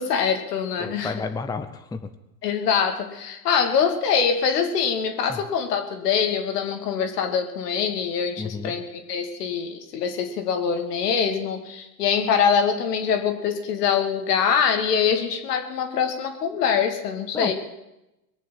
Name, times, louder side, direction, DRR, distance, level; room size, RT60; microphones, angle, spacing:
voice 1, 0.0-1.1 2.4-17.5, left 7 dB, 70° left, 5 dB, 2.6 m, -24 dB
voice 2, 0.8-2.1 5.3-5.4 8.4-8.7 17.3-17.5, left 4 dB, 10° left, 9 dB, 0.8 m, -31 dB
22.0 x 7.7 x 7.6 m, 0.91 s
hypercardioid pair, 100°, 49 cm